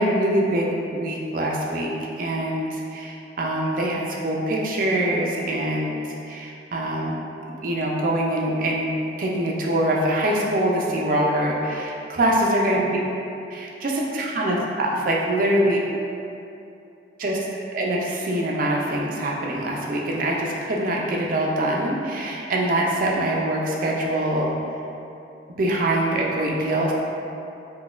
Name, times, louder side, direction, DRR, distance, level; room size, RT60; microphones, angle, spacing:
voice 1, 0.0-7.2 7.6-8.9 9.2-13.0 13.5-15.8 17.2-17.4 17.7-24.6 25.6-26.9, right 1 dB, 45° right, -2 dB, 0.4 m, -24 dB
3.8 x 2.2 x 2.4 m, 2.7 s
head